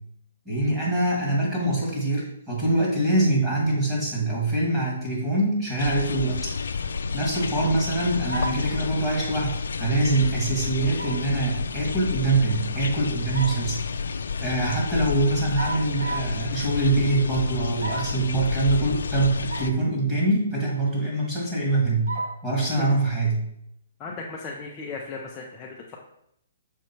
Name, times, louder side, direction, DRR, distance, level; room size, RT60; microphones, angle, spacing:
voice 1, 0.5-6.5 7.1-13.8 14.4-22.1 22.4-23.4, right 2 dB, 10° right, -5 dB, 2.1 m, -24 dB
sound 1, 5.8-19.7, left 5 dB, 80° left, 0.4 m, -30 dB
sound 2, 8.3-8.7 11.0-11.3 13.1-13.7 15.5-16.4 17.8-18.2 19.5-19.8 20.3-20.4 22.1-22.4, right 2 dB, 85° right, 1.2 m, -33 dB
voice 2, 24.0-26.0, left 3 dB, 15° left, -2 dB, 0.6 m, -36 dB
6.4 x 4.6 x 4.4 m, 0.75 s
hypercardioid pair, 165°, 0 cm